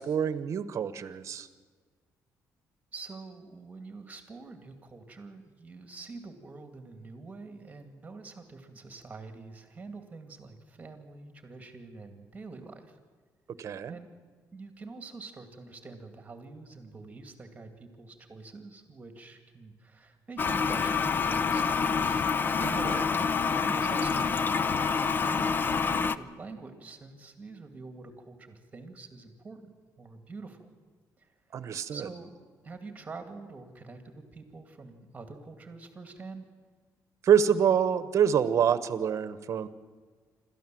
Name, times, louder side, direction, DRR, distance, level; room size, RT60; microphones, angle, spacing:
voice 1, 0.0-1.5 13.6-14.0 22.6-23.1 31.5-32.1 37.2-39.7, right 8 dB, 50° right, 14 dB, 1.1 m, -26 dB
voice 2, 2.9-13.0 13.9-14.1 14.5-22.2 23.1-29.7 30.0-30.7 31.2-32.3 32.6-36.4, right 3 dB, 20° right, 7 dB, 2.2 m, -46 dB
Toilet flush, 20.4-26.2, left 5 dB, 30° left, 0.6 m, -27 dB
27.0 x 13.5 x 7.7 m, 1.5 s
cardioid pair, 140°, 7 cm